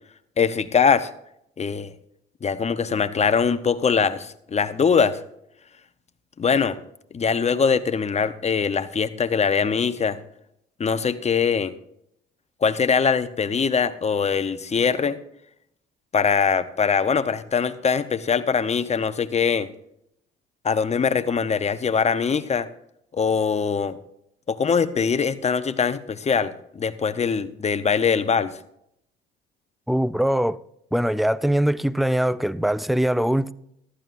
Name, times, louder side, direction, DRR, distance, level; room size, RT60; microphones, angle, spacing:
voice 1, 0.4-1.1 1.6-1.9 2.4-5.2 6.4-6.8 7.1-10.2 10.8-11.7 12.6-15.2 16.1-19.7 20.6-22.7 23.1-24.0 24.5-28.5, left 6 dB, 30° left, 0.9 m, -22 dB
voice 2, 29.9-30.6 30.9-33.5, right 1 dB, ahead, 0.4 m, -22 dB
15.0 x 13.0 x 2.6 m
cardioid pair, 85°, 21 cm